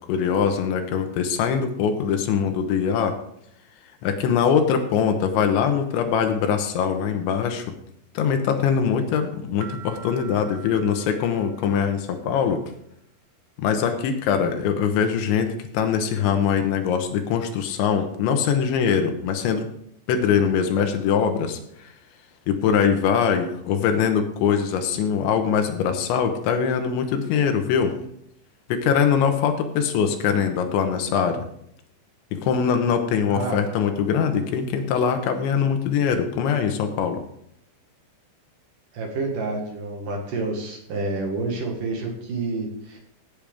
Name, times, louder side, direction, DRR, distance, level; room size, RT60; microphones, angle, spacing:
voice 1, 0.1-3.2 4.0-7.7 8.1-12.6 13.6-19.7 20.1-21.6 22.5-27.9 28.7-31.4 32.3-37.2, left 7 dB, 75° left, 6 dB, 3.2 m, -22 dB
sound 1, 9.6-12.3, right 7 dB, 80° right, 3.0 m, -44 dB
voice 2, 33.3-33.6 38.9-43.0, right 3 dB, 55° right, 1 dB, 2.6 m, -29 dB
17.0 x 8.9 x 3.5 m, 0.73 s
omnidirectional pair, 5.7 m